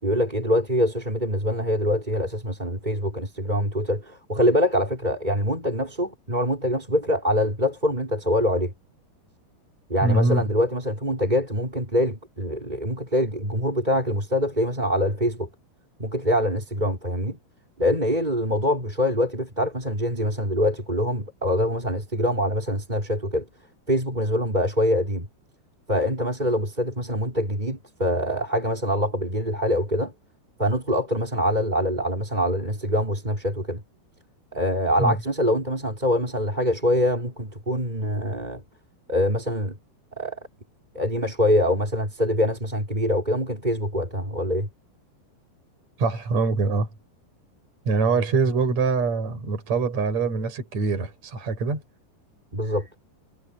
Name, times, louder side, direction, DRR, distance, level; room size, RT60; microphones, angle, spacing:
voice 1, 0.0-8.7 9.9-15.5 16.0-17.4 17.8-23.4 23.9-25.3 25.9-30.1 30.6-33.8 34.5-38.6 39.1-39.8 40.2-40.4 40.9-44.7 52.5-52.9, equal, 10° right, 4.9 m, -24 dB
voice 2, 10.0-10.4 35.0-35.2 46.0-46.9 47.9-51.8, right 4 dB, 40° right, 7.1 m, -23 dB
omnidirectional pair, 5.2 m